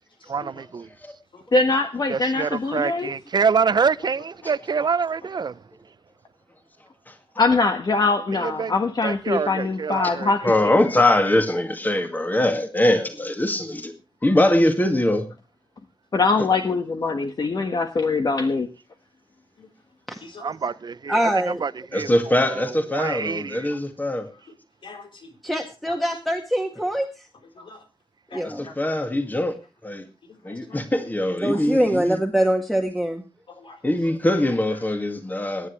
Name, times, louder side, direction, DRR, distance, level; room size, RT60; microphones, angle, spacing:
voice 1, 0.3-0.9 2.1-5.5 8.3-8.7 9.0-10.3 20.4-21.2 21.5-23.7, right 5 dB, 55° right, 0.6 m, -26 dB
voice 2, 1.5-3.1 7.4-10.7 16.1-18.7, left 3 dB, 55° left, 1.4 m, -22 dB
voice 3, 3.7-4.6 19.6-19.7 20.2-20.5 23.7-23.8 24.3-24.4 24.8-25.4 25.9-26.0 27.5-27.9 28.3-28.8 29.4-29.5 30.2-30.8 31.3-31.6 33.5-33.8 34.9-35.0, left 3 dB, 85° left, 3.9 m, -45 dB
voice 4, 10.4-13.9 14.2-15.3 21.9-24.3 28.4-29.5 29.8-30.0 30.4-32.2 33.8-35.7, left 1 dB, 20° left, 2.1 m, -22 dB
voice 5, 21.1-21.6 25.4-27.1 28.3-28.7 31.4-33.2, right 1 dB, ahead, 1.7 m, -23 dB
23.0 x 10.0 x 3.2 m
wide cardioid pair, 130°, 9 cm